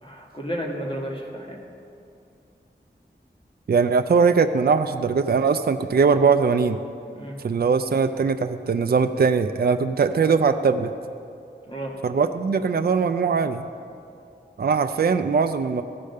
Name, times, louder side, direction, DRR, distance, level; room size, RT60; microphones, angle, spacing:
voice 1, 0.0-1.6 7.1-7.4 11.7-11.9, equal, 30° left, -1 dB, 1.6 m, -32 dB
voice 2, 3.7-6.8 7.4-10.9 12.0-13.7 14.6-15.8, right 5 dB, 60° right, 9 dB, 0.4 m, -21 dB
15.0 x 5.0 x 6.6 m, 2.5 s
wide cardioid pair, 55°, 18 cm